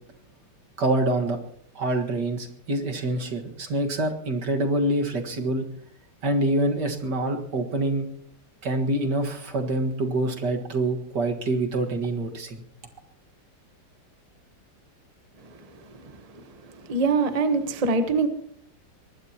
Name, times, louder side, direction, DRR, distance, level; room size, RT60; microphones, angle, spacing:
voice 1, 0.8-1.4 1.8-5.7 6.2-8.1 8.6-12.6, right 1 dB, 65° right, 2.3 m, -26 dB
voice 2, 16.9-18.3, right 4 dB, 25° right, 1.0 m, -23 dB
23.0 x 20.0 x 2.9 m
omnidirectional pair, 2.0 m